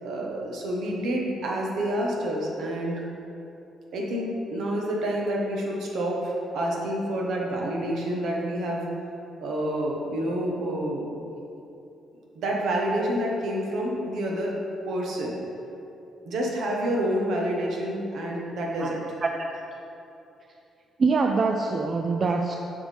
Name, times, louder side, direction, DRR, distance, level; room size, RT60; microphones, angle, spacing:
voice 1, 0.0-3.0 3.9-8.8 9.4-11.2 12.3-14.5 14.9-15.4 16.2-19.0, right 1 dB, 75° right, -2 dB, 1.2 m, -28 dB
voice 2, 21.0-22.6, right 4 dB, 40° right, 3 dB, 0.4 m, -24 dB
7.1 x 5.7 x 3.5 m, 2.8 s
cardioid pair, 90°, 0 cm